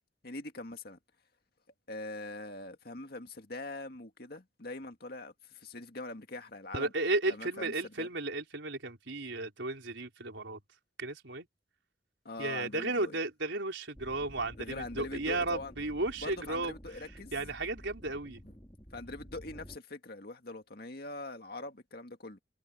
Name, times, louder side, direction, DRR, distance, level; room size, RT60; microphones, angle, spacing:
voice 1, 0.2-1.0 1.9-6.9 7.3-8.1 12.2-13.2 14.6-15.7 16.2-17.3 18.4-18.5 18.9-22.4, left 2 dB, 55° left, 2.2 m, -43 dB
voice 2, 6.7-10.6 11.0-11.5 12.4-16.7 17.3-18.4, right 2 dB, 75° right, 4.3 m, -34 dB
sound 1, 13.9-19.8, equal, 20° left, 5.4 m, -51 dB
head